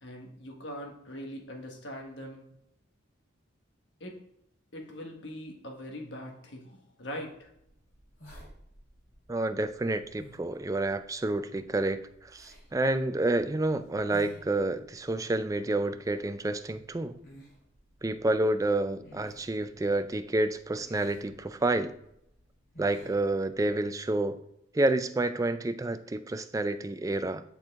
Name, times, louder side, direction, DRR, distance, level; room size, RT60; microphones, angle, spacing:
voice 1, 0.0-2.5 4.0-4.2 4.7-7.5, equal, 65° left, 1 dB, 1.4 m, -42 dB
sound 1, 7.4-23.9, equal, 45° left, 2.7 m, -56 dB
voice 2, 9.3-17.2 18.0-21.9 22.8-24.4 24.7-27.4, right 2 dB, 15° right, 10 dB, 0.3 m, -29 dB
10.0 x 4.5 x 3.6 m, 0.78 s
head